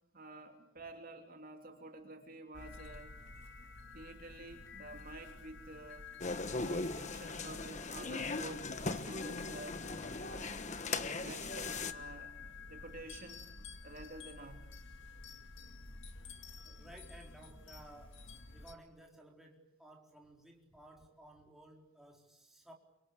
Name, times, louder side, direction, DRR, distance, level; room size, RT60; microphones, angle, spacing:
voice 1, 0.1-3.1 3.9-6.1 6.6-9.8 10.2-10.5 11.2-12.3 12.7-13.4 13.8-14.6, right 2 dB, 45° right, 3.2 m, -50 dB
sound 1, 2.5-18.7, left 4 dB, 60° left, 2.1 m, -51 dB
sound 2, 6.2-11.9, left 3 dB, 35° left, 1.4 m, -39 dB
voice 2, 16.6-22.7, right 1 dB, ahead, 4.2 m, -57 dB
28.0 x 25.0 x 8.5 m
head